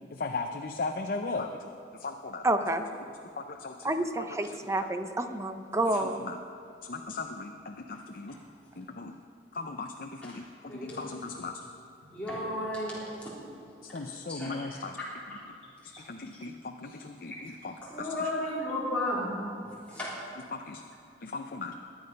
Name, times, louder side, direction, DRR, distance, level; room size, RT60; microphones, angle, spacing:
voice 1, 0.1-2.4 3.0-4.9 5.8-6.4 6.8-8.4 8.7-9.2 9.5-11.7 13.8-15.0 16.0-18.3 20.5-20.8 21.2-21.8, left 3 dB, 55° left, 4 dB, 0.7 m, -38 dB
voice 2, 2.4-2.8 3.8-6.2, right 2 dB, 15° right, 8 dB, 0.7 m, -29 dB
voice 3, 10.7-11.0 12.0-13.3 14.3-14.5 15.3-15.4 15.9-16.0 17.3-17.4 17.8-20.2, left 1 dB, 10° left, -9 dB, 3.6 m, -34 dB
21.5 x 8.8 x 5.4 m, 2.4 s
head